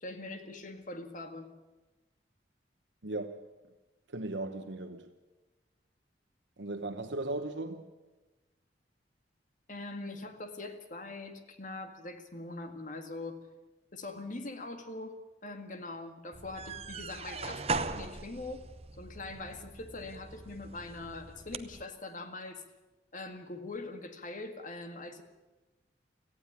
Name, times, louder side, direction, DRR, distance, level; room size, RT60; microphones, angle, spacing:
voice 1, 0.0-1.5 9.7-13.4 13.9-18.6 19.0-22.6 23.1-25.2, left 2 dB, 45° left, 2.0 m, -42 dB
voice 2, 3.0-3.5 4.1-5.1 6.6-7.8, right 2 dB, 85° right, 1.1 m, -37 dB
sound 1, 16.3-21.8, right 4 dB, 35° right, 0.8 m, -40 dB
18.0 x 15.0 x 9.9 m
head